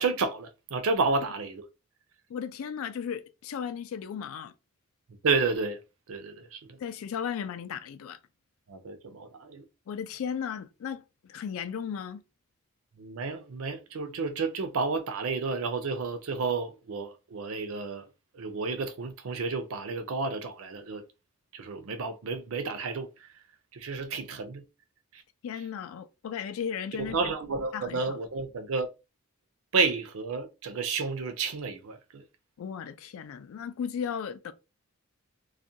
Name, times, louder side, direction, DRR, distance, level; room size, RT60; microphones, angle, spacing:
voice 1, 0.0-1.6 5.2-5.8 6.1-6.8 8.7-9.7 13.0-18.1 18.3-21.0 21.5-23.3 23.7-24.6 25.1-25.2 26.9-28.9 29.7-32.2, right 4 dB, 75° right, 0.5 m, -31 dB
voice 2, 2.3-4.5 6.8-8.2 9.9-12.2 25.4-27.2 27.7-28.2 32.6-34.5, left 7 dB, 75° left, 0.3 m, -35 dB
2.4 x 2.1 x 2.7 m
head